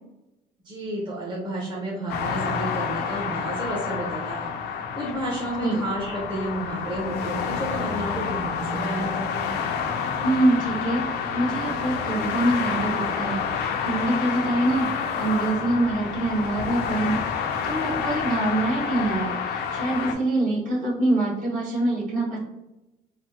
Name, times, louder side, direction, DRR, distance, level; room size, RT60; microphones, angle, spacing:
voice 1, 0.6-4.5 5.0-9.6, right 1 dB, 25° right, -6 dB, 0.8 m, -31 dB
sound 1, 2.1-20.1, left 6 dB, 80° left, 0.4 m, -29 dB
voice 2, 10.2-22.4, right 2 dB, 50° right, -5 dB, 1.3 m, -25 dB
3.4 x 2.0 x 2.8 m, 0.97 s
cardioid pair, 110°, 17 cm